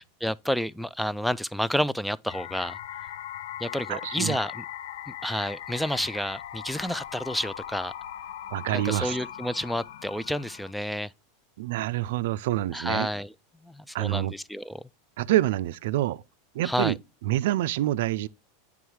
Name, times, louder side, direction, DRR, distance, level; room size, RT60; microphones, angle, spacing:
voice 1, 0.0-2.8 3.6-4.7 5.1-7.9 8.7-11.1 12.7-13.3 13.6-14.8 16.6-16.9, equal, ahead, 0.3 m, -30 dB
sound 1, 2.3-10.7, left 11 dB, 80° left, 0.5 m, -39 dB
voice 2, 3.9-4.4 8.5-9.2 11.6-13.1 13.9-14.3 15.2-16.2 16.5-17.0 17.3-18.3, right 14 dB, 75° right, 0.4 m, -26 dB
9.2 x 3.6 x 4.6 m
hypercardioid pair, 115°, 0 cm